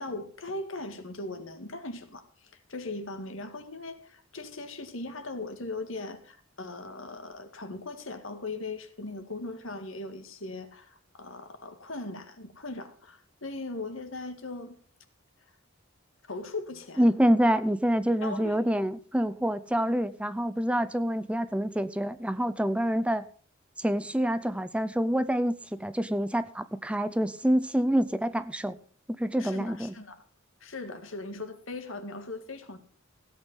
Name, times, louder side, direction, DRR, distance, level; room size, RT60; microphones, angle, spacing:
voice 1, 0.0-14.8 16.2-17.1 18.2-18.6 29.4-30.2 30.6-32.8, left 2 dB, 75° left, 2.0 m, -39 dB
voice 2, 17.0-23.2 23.8-28.8 29.2-29.9, equal, 5° right, 0.5 m, -27 dB
16.0 x 8.7 x 5.5 m
head